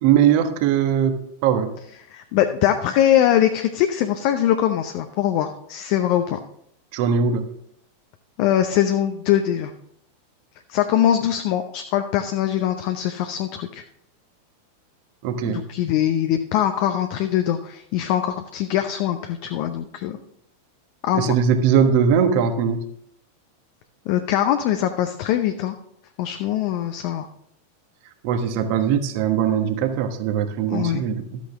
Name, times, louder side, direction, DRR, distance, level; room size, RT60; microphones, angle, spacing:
voice 1, 0.0-1.7 6.9-7.5 15.2-15.6 21.1-22.8 28.2-31.4, right 7 dB, 45° right, 7 dB, 1.2 m, -20 dB
voice 2, 2.1-6.4 8.4-9.7 10.7-13.8 15.4-20.2 21.0-21.3 24.1-25.8 26.2-27.3 30.7-31.0, left 11 dB, 45° left, 7 dB, 0.7 m, -22 dB
13.0 x 8.4 x 3.6 m, 0.71 s
figure-of-eight pair, 90°, 0 cm